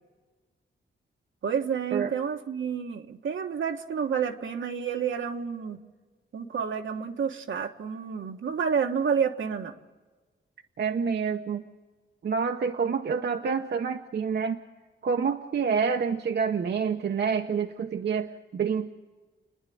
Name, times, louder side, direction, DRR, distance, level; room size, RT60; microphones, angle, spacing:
voice 1, 1.4-5.8 6.3-9.8, right 7 dB, 75° right, 5 dB, 1.4 m, -29 dB
voice 2, 10.8-11.6 12.2-14.6 15.0-18.9, right 6 dB, 60° right, 5 dB, 0.8 m, -28 dB
30.0 x 10.5 x 8.6 m, 1.4 s
wide cardioid pair, 130°, 20 cm